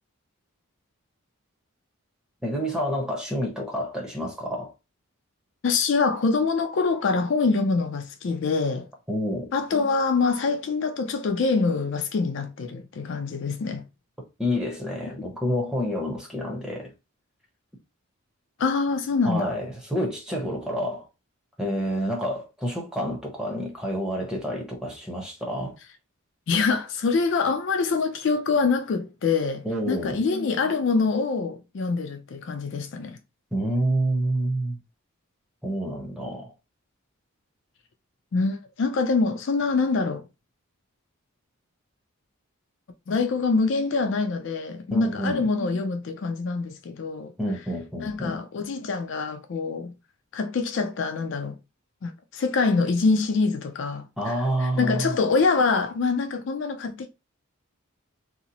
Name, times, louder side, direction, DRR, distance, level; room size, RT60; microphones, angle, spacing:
voice 1, 2.4-4.7 9.1-9.5 14.4-16.9 19.2-21.0 21.6-25.7 29.6-30.2 33.5-34.8 35.6-36.5 44.9-45.5 47.4-48.3 54.2-55.2, equal, 5° right, 0.7 m, -28 dB
voice 2, 5.6-8.9 9.5-13.8 15.2-15.3 18.6-19.5 26.5-33.2 38.3-40.2 43.1-47.3 48.0-49.9 50.3-51.6 52.0-57.1, left 4 dB, 55° left, 0.4 m, -25 dB
2.8 x 2.0 x 3.8 m
head